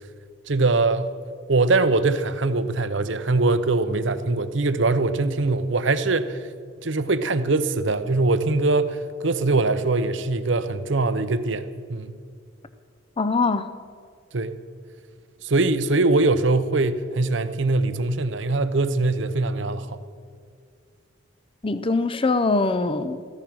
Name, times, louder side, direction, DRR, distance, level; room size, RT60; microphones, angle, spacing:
voice 1, 0.5-1.1 1.5-6.5 6.8-12.1 14.3-14.5 15.4-20.0, right 3 dB, 65° right, 12 dB, 0.8 m, -22 dB
voice 2, 13.2-13.7 21.6-23.2, left 3 dB, 25° left, 12 dB, 0.6 m, -22 dB
15.0 x 14.0 x 6.2 m, 2.1 s
head